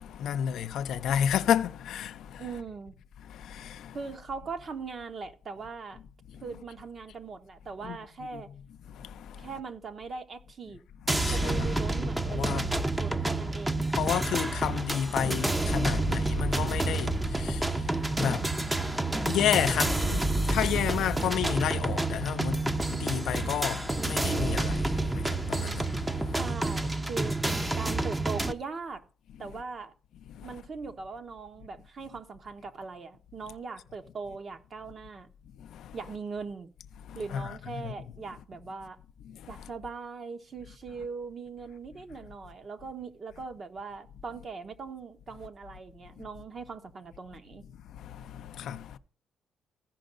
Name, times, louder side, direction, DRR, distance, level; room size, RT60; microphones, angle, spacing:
voice 1, 0.0-2.5 3.2-4.0 6.3-6.4 7.8-8.0 8.3-8.6 8.9-9.5 11.1-11.8 12.3-13.1 13.9-26.5 30.3-30.6 35.6-36.0 37.0-37.9 39.2-39.7 46.2-46.3 47.8-49.0, left 9 dB, 75° left, 0.5 m, -32 dB
voice 2, 2.4-3.0 3.9-6.0 6.4-8.5 9.4-10.8 11.3-14.0 26.3-27.4 27.8-29.0 29.4-29.9 30.4-35.3 35.9-36.7 37.1-39.0 39.5-47.6, right 4 dB, 45° right, 1.0 m, -40 dB
sound 1, 11.1-28.5, right 2 dB, 15° right, 0.7 m, -29 dB
15.0 x 5.3 x 3.8 m
cardioid pair, 90°, 0 cm